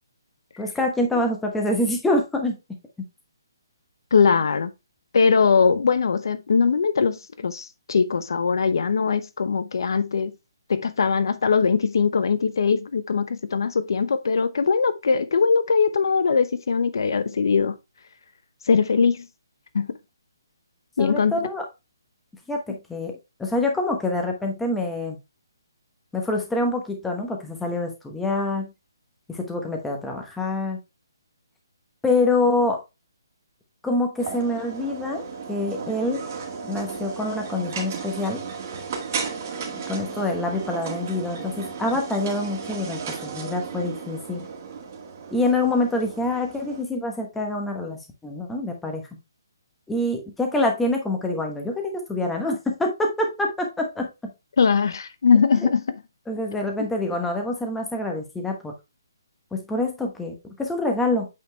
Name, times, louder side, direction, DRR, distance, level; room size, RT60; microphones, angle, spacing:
voice 1, 0.6-2.6 21.0-21.6 22.5-23.1 23.4-25.2 26.1-28.7 29.3-30.8 32.0-32.8 33.8-36.2 36.6-38.4 39.9-44.4 45.3-49.0 49.9-54.3 55.6-55.7 56.3-58.7 59.5-61.3, left 2 dB, 5° left, 1.1 m, -26 dB
voice 2, 4.1-4.7 5.1-10.3 10.7-17.8 18.7-19.3 19.7-19.9 21.0-21.3 54.6-56.0, left 5 dB, 65° left, 0.8 m, -21 dB
sound 1, 34.2-46.8, right 5 dB, 35° right, 1.8 m, -34 dB
8.5 x 4.3 x 3.3 m
hypercardioid pair, 170°, 2 cm